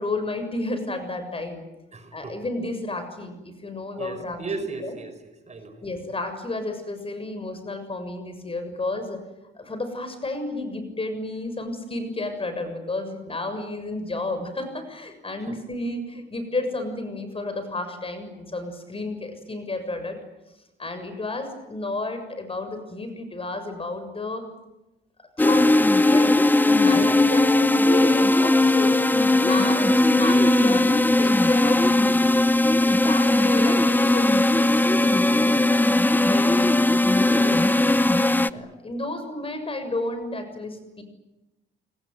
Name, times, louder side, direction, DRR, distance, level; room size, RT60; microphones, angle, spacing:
voice 1, 0.0-1.6 2.1-4.4 4.8-5.0 5.8-9.2 9.6-20.2 20.8-24.5 25.4-25.7 26.1-26.4 26.8-32.2 32.8-35.8 36.1-37.8 38.2-41.0, left 2 dB, 30° left, 9 dB, 6.9 m, -31 dB
voice 2, 1.9-2.4 4.0-5.9 15.4-15.6 26.9-27.2 38.5-38.6, right 3 dB, 35° right, 9 dB, 5.1 m, -36 dB
sound 1, 25.4-38.5, left 2 dB, 10° left, 0.9 m, -19 dB
29.5 x 20.5 x 9.5 m, 0.98 s
cardioid pair, 90°, 20 cm